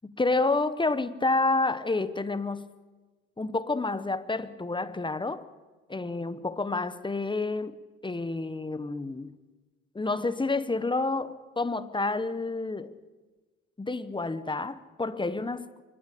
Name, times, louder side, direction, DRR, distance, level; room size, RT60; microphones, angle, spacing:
voice 1, 0.0-2.7 3.4-5.4 5.9-7.8 8.0-9.4 9.9-12.9 13.8-15.8, left 3 dB, 15° left, 1.0 m, -29 dB
25.0 x 12.5 x 8.4 m
cardioid pair, 90°, 30 cm